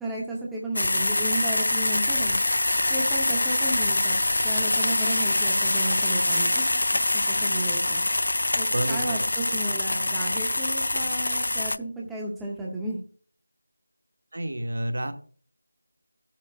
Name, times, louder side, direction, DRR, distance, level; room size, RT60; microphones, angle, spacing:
voice 1, 0.0-2.4 2.9-4.1 4.4-8.0 8.6-13.0, right 1 dB, ahead, -5 dB, 0.6 m, -33 dB
sound 1, 0.8-11.8, left 2 dB, 60° left, 0.4 m, -24 dB
voice 2, 8.7-9.3 14.3-15.1, right 1 dB, 60° right, 7 dB, 1.1 m, -29 dB
15.5 x 7.3 x 2.3 m, 0.42 s
figure-of-eight pair, 180°, 0 cm